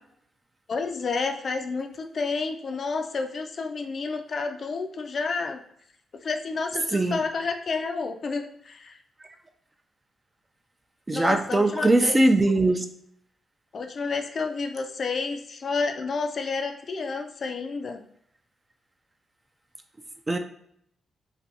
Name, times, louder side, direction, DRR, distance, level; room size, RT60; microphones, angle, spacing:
voice 1, 0.7-5.6 6.2-9.0 11.1-12.2 13.7-18.0, left 4 dB, 55° left, 5 dB, 0.3 m, -30 dB
voice 2, 11.1-12.8 20.3-20.4, right 2 dB, 25° right, 7 dB, 0.4 m, -21 dB
2.5 x 2.2 x 2.8 m, 0.68 s
supercardioid pair, 50°, 0 cm